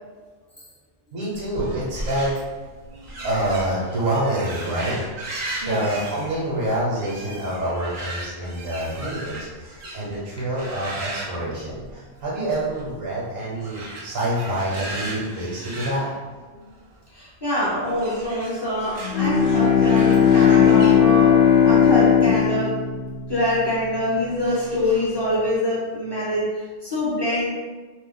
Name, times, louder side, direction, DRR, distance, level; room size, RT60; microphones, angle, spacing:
voice 1, 1.1-2.3 3.2-5.0 5.6-16.1, right 1 dB, 80° right, -6 dB, 1.1 m, -27 dB
sound 1, 1.3-10.2 10.5-12.2 12.5-12.9 13.5-16.9 17.8-20.9, right 1 dB, 50° right, 0.7 m, -36 dB
voice 2, 17.1-22.8 23.3-27.5, left 1 dB, 25° left, -8 dB, 0.6 m, -25 dB
Bowed string instrument, 19.0-23.9, left 8 dB, 70° left, 0.8 m, -17 dB
2.5 x 2.1 x 3.8 m, 1.3 s
omnidirectional pair, 1.3 m